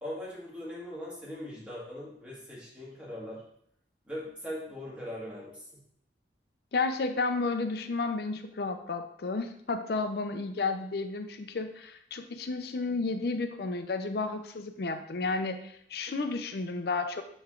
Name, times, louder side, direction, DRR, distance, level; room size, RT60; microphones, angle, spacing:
voice 1, 0.0-3.4 4.1-5.7, left 1 dB, 5° right, -6 dB, 1.7 m, -40 dB
voice 2, 6.7-17.2, left 3 dB, 55° left, 7 dB, 0.5 m, -32 dB
8.6 x 3.1 x 3.7 m, 0.69 s
head